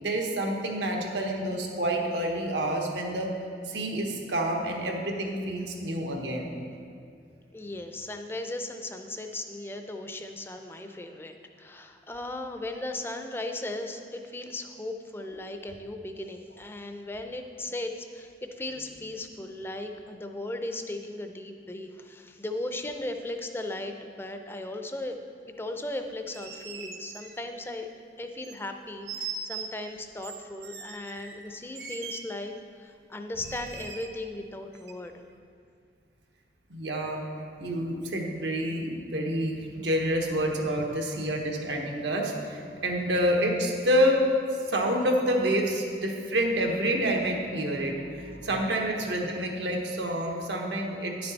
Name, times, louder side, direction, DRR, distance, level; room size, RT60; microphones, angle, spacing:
voice 1, 0.0-3.3 3.7-6.5 36.7-37.2 37.6-44.2 44.7-51.3, equal, 85° right, 1 dB, 1.1 m, -28 dB
voice 2, 7.5-25.2 25.6-27.9 28.2-35.1, left 2 dB, 15° left, 5 dB, 0.4 m, -37 dB
sound 1, 26.1-27.9 28.4-28.6 29.1-29.7 30.2-32.2 33.4-34.1 34.7-34.9, right 5 dB, 65° right, 0.7 m, -40 dB
10.5 x 6.8 x 4.0 m, 2.3 s
head